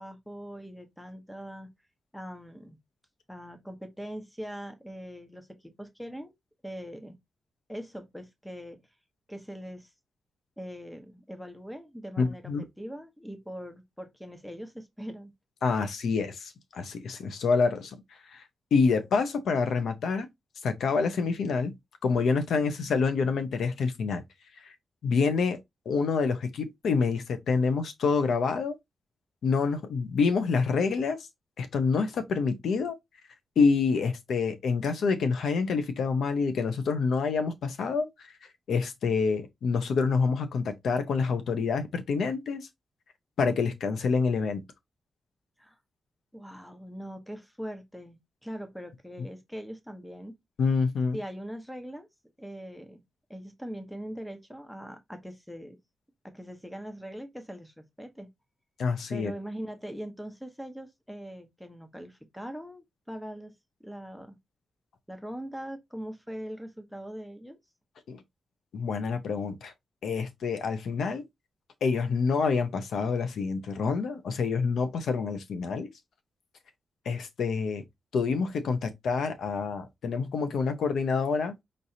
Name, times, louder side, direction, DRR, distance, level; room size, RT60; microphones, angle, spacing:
voice 1, 0.0-1.7 2.1-2.8 3.3-6.3 6.6-7.2 7.7-8.8 9.3-9.9 10.6-15.3 45.6-45.8 46.3-50.4 51.1-52.1 52.4-53.0 53.3-55.8 56.2-58.3 59.1-63.5 63.8-64.4 65.1-67.6, equal, 5° left, 1.1 m, -41 dB
voice 2, 12.2-12.7 15.6-18.0 18.3-18.4 18.7-20.3 20.6-21.7 22.0-24.2 24.6-24.7 25.0-25.6 25.8-28.7 29.4-31.3 31.6-33.0 33.6-38.3 38.7-42.7 43.4-44.6 50.6-51.2 58.8-59.3 68.1-68.2 68.7-69.7 70.0-71.2 71.8-75.9 77.0-77.8 78.1-81.5, left 5 dB, 85° left, 0.9 m, -27 dB
5.4 x 3.2 x 2.7 m
cardioid pair, 90°, 0 cm